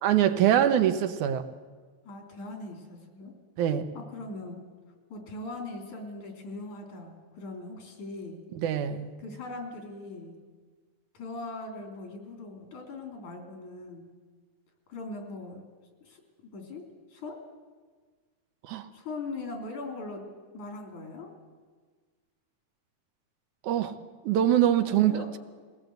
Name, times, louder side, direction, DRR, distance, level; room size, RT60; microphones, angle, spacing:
voice 1, 0.0-1.4 3.6-3.9 8.6-9.2 18.6-18.9 23.6-23.9 24.2-25.1, right 10 dB, 85° right, 9 dB, 2.4 m, -24 dB
voice 2, 2.0-3.3 3.9-4.6 5.1-8.4 9.2-10.4 11.1-14.1 14.9-15.6 16.0-16.8 17.1-17.4 18.9-20.3 20.5-21.3 24.8-25.3, left 2 dB, 85° left, 2 dB, 4.5 m, -40 dB
21.5 x 17.5 x 8.0 m, 1.5 s
omnidirectional pair, 3.3 m